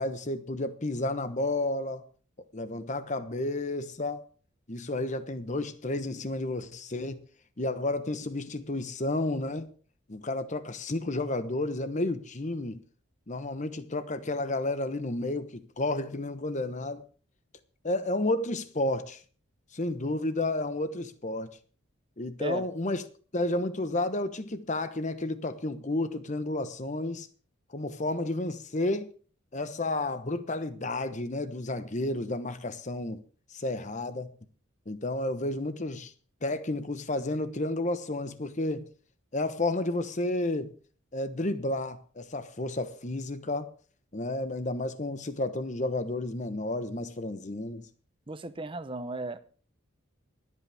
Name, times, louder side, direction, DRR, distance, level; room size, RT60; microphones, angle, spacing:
voice 1, 0.0-2.0 2.5-4.2 4.7-7.2 7.6-9.7 10.1-12.8 13.3-17.0 17.8-19.2 19.7-21.5 22.2-23.0 23.3-27.3 27.7-29.1 29.5-33.2 33.5-34.3 34.9-36.1 36.4-38.9 39.3-40.7 41.1-43.7 44.1-47.8, left 2 dB, 35° left, 1.0 m, -31 dB
voice 2, 48.3-49.4, right 2 dB, 25° right, 0.8 m, -35 dB
24.5 x 8.5 x 3.5 m
head